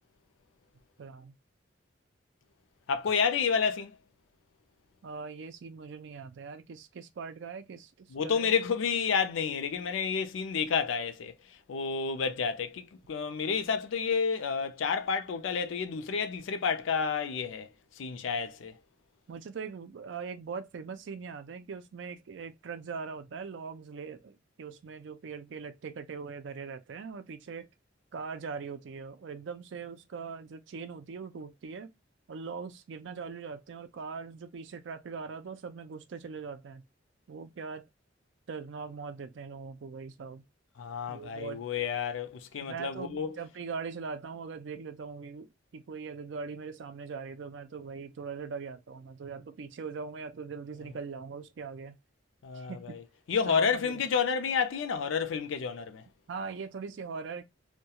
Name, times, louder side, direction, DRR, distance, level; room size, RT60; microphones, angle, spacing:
voice 1, 1.0-1.3 5.0-8.5 19.3-27.7 28.1-31.9 32.3-36.8 37.3-37.9 38.5-40.4 41.1-41.7 42.6-52.0 52.5-53.0 53.5-54.0 56.3-57.4, right 5 dB, 65° right, 0.4 m, -41 dB
voice 2, 2.9-3.9 8.1-11.3 11.7-17.7 18.0-18.7 40.8-43.4 52.4-53.0 53.3-56.0, left 6 dB, 80° left, 0.4 m, -30 dB
2.3 x 2.1 x 2.8 m
head